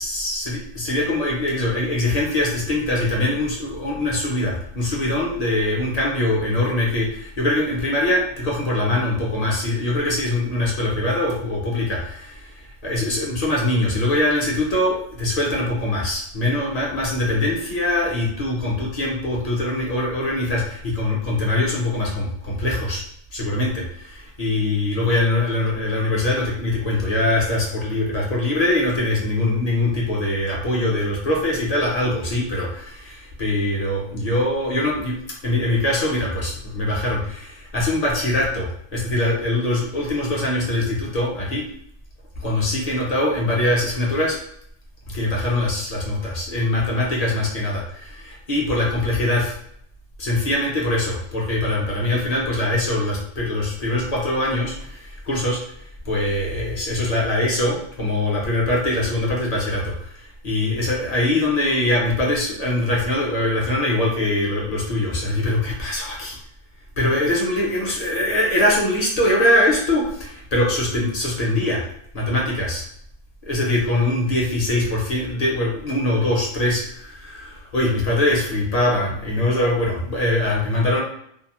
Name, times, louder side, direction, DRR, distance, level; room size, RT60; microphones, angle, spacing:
voice 1, 0.0-23.0 23.3-41.6 42.4-44.4 45.1-49.5 50.2-55.6 56.0-66.3 67.0-71.8 72.1-72.8 73.5-81.0, left 1 dB, 40° left, -3 dB, 0.6 m, -22 dB
2.7 x 2.2 x 2.9 m, 0.69 s
omnidirectional pair, 1.3 m